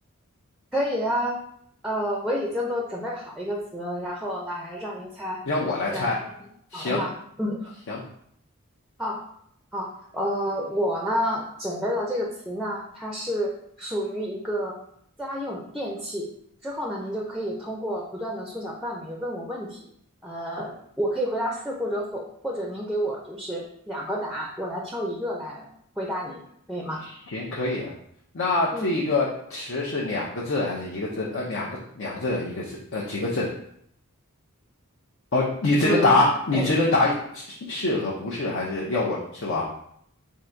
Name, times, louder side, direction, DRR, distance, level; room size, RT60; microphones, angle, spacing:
voice 1, 0.7-1.4 1.8-5.4 5.9-6.1 6.7-7.1 7.4-7.7 9.0-9.3 9.7-13.5 13.8-14.8 15.2-16.3 16.6-19.9 20.2-25.7 26.0-26.4 26.7-27.0 28.7-28.9 35.8-36.2 36.5-36.7, equal, ahead, -1 dB, 0.5 m, -29 dB
voice 2, 5.5-6.2 6.7-7.0 7.9-8.0 27.0-27.9 28.3-33.5 35.3-39.6, left 2 dB, 60° left, -5 dB, 0.6 m, -25 dB
3.7 x 2.7 x 4.4 m, 0.70 s
head